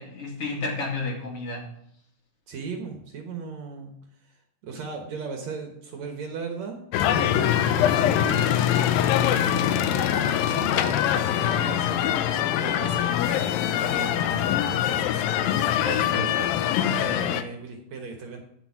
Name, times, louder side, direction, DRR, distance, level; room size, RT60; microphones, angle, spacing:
voice 1, 0.0-1.6 15.8-16.5, left 2 dB, 45° left, -1 dB, 3.0 m, -31 dB
voice 2, 2.5-3.9 4.2-8.9 9.2-12.2 12.6-15.1 16.8-18.4, right 5 dB, 60° right, 3 dB, 2.2 m, -37 dB
sound 1, 6.9-17.4, left 10 dB, 85° left, 2.4 m, -23 dB
10.0 x 7.0 x 5.8 m, 0.72 s
omnidirectional pair, 4.0 m